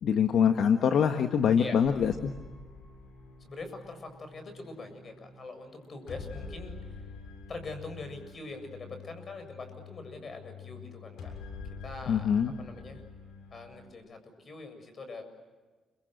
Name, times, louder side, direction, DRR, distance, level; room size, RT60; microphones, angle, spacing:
voice 1, 0.0-2.3 12.1-12.5, left 7 dB, 65° left, 6 dB, 1.6 m, -24 dB
sound 1, 1.8-13.9, left 4 dB, 85° left, 7.3 m, -46 dB
voice 2, 3.4-7.0 7.5-11.3 11.8-13.0 13.5-15.2, left 3 dB, 45° left, 7 dB, 7.4 m, -43 dB
30.0 x 25.0 x 7.9 m, 1.3 s
cardioid pair, 90°, 0 cm